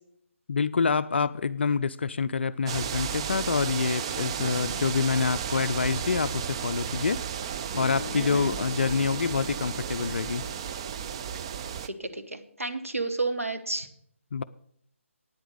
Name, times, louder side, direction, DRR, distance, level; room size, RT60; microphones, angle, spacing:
voice 1, 0.5-7.2 7.8-10.4 14.3-14.4, left 5 dB, 55° left, 14 dB, 0.4 m, -27 dB
sound 1, 2.7-11.9, right 8 dB, 25° right, 0.4 m, -33 dB
voice 2, 4.4-4.8 8.1-8.5 11.8-13.9, right 3 dB, 85° right, 6 dB, 1.5 m, -32 dB
Bass guitar, 7.7-11.8, left 3 dB, 25° left, 0.8 m, -43 dB
9.4 x 9.1 x 6.5 m, 0.67 s
figure-of-eight pair, 145°, 7 cm